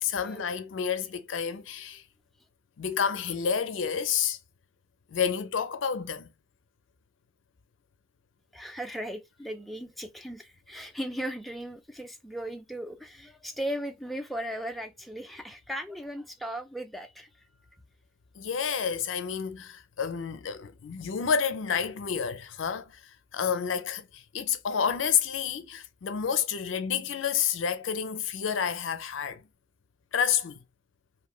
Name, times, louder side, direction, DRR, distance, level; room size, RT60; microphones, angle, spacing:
voice 1, 0.0-2.0 2.8-4.4 5.1-6.3 18.4-23.0 23.3-29.4 30.1-30.6, left 7 dB, 75° left, 0.4 m, -29 dB
voice 2, 8.5-17.3, equal, ahead, 0.3 m, -37 dB
3.0 x 2.6 x 2.3 m
head